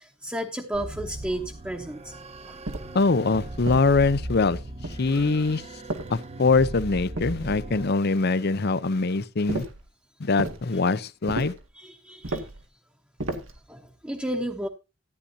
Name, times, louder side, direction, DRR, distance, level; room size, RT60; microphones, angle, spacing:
voice 1, 0.0-2.1 2.4-2.6 5.1-5.4 11.7-12.5 13.7-14.7, right 1 dB, 5° right, 1.1 m, -33 dB
sound 1, 0.7-7.9, right 1 dB, 35° right, 0.8 m, -38 dB
sound 2, 2.7-3.1 3.7-4.3 4.8-5.3 5.9-6.5 7.2-7.8 9.5-9.9 10.4-10.7 11.3-11.7 12.2-12.6 13.2-13.6, right 2 dB, 85° right, 2.0 m, -34 dB
voice 2, 2.9-4.6 5.0-5.6 6.1-9.6 10.2-11.5, left 3 dB, 55° left, 0.7 m, -23 dB
14.5 x 9.9 x 2.8 m
head